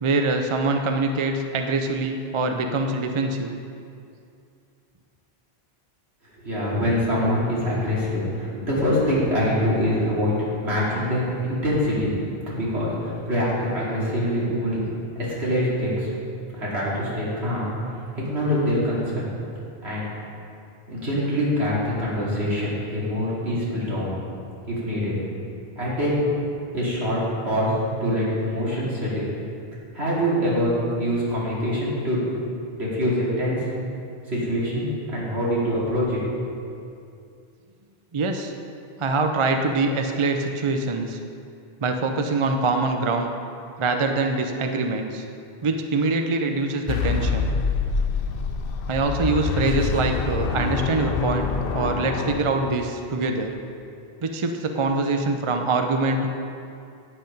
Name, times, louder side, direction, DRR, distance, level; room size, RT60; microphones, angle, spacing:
voice 1, 0.0-3.5 38.1-38.5 39.0-41.2 41.8-43.4 43.8-45.3 45.6-47.5 48.9-51.5 51.7-53.5 54.2-56.3, right 3 dB, 40° right, 5 dB, 0.5 m, -24 dB
voice 2, 6.4-12.2 12.5-14.8 15.2-16.1 16.5-17.7 18.3-19.3 19.8-20.1 20.9-24.2 24.7-25.1 25.7-26.1 26.7-27.2 27.4-27.7 28.0-29.3 29.9-32.2 32.7-33.6 34.3-36.2, equal, 75° right, -7 dB, 2.9 m, -24 dB
sound 1, 46.9-53.1, left 5 dB, 65° left, 0.8 m, -26 dB
8.7 x 8.1 x 5.2 m, 2.5 s
omnidirectional pair, 1.1 m